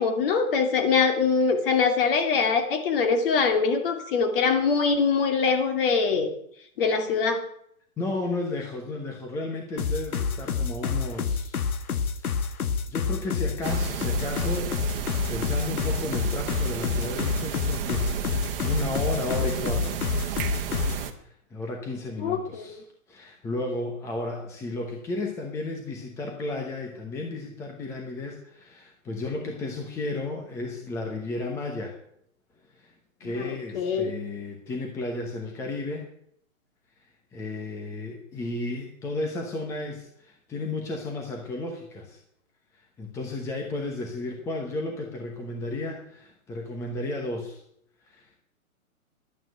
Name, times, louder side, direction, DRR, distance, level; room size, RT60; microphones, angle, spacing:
voice 1, 0.0-6.3 6.8-7.4 22.2-22.8 33.7-34.1, left 5 dB, 40° left, 6 dB, 2.5 m, -23 dB
voice 2, 8.0-11.6 12.2-12.3 12.9-14.8 15.3-20.0 21.2-22.8 23.1-31.9 32.7-32.9 33.2-36.1 37.3-42.2 42.8-47.6 48.1-48.4, left 2 dB, 5° left, 2 dB, 0.9 m, -33 dB
sound 1, 9.8-21.0, left 6 dB, 80° left, 1.6 m, -28 dB
sound 2, 13.6-21.1, right 8 dB, 40° right, 1.4 m, -32 dB
11.5 x 8.9 x 9.0 m, 0.70 s
hypercardioid pair, 155°, 43 cm